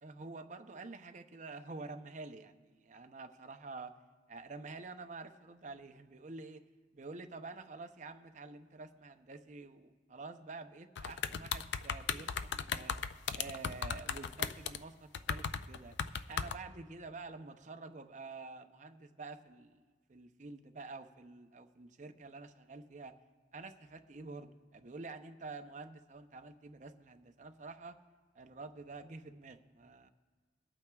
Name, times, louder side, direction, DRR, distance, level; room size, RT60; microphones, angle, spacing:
voice 1, 0.0-3.9 4.3-6.6 6.9-13.0 13.3-19.8 20.1-23.1 23.5-28.0 28.3-30.1, right 3 dB, 40° right, 7 dB, 0.6 m, -48 dB
sound 1, 11.0-14.8 15.1-16.6, left 7 dB, 70° left, 0.4 m, -36 dB
25.0 x 8.7 x 2.3 m, 1.4 s
head